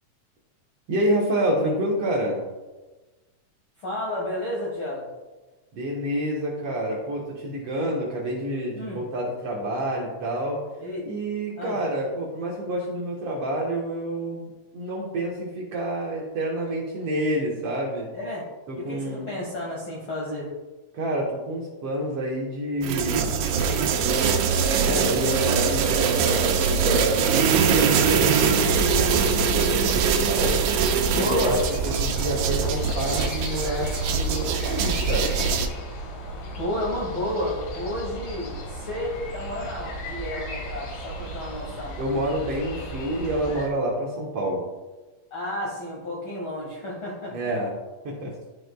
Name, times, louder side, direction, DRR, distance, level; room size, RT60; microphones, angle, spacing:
voice 1, 0.9-2.4 5.7-10.6 11.0-18.1 18.7-19.3 20.9-23.3 24.0-24.4 24.8-30.6 31.1-31.6 32.0-35.4 42.0-44.6 47.3-47.7 48.0-48.4, right 1 dB, 65° right, -4 dB, 1.7 m, -28 dB
voice 2, 3.8-5.1 8.7-9.0 10.8-11.1 11.6-11.8 18.1-18.5 18.7-20.5 31.0-31.6 36.6-42.0 45.3-47.5, left 1 dB, 65° left, -4 dB, 1.3 m, -31 dB
sound 1, 22.8-35.7, right 6 dB, 80° right, 2.1 m, -22 dB
sound 2, 28.3-43.7, equal, 85° left, 3.1 m, -36 dB
12.0 x 4.9 x 2.2 m, 1.2 s
omnidirectional pair, 3.8 m